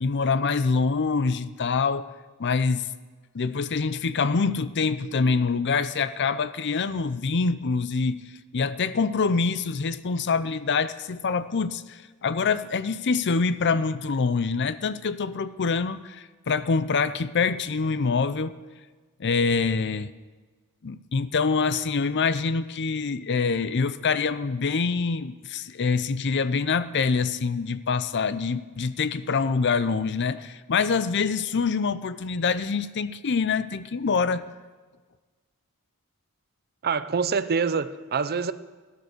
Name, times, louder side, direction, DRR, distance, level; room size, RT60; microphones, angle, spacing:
voice 1, 0.0-2.1 2.4-2.9 3.3-8.2 8.5-18.6 19.2-20.1 20.8-34.5, left 4 dB, 55° left, 0.6 m, -25 dB
voice 2, 36.8-38.5, right 5 dB, 45° right, 0.6 m, -25 dB
17.0 x 11.0 x 6.6 m
head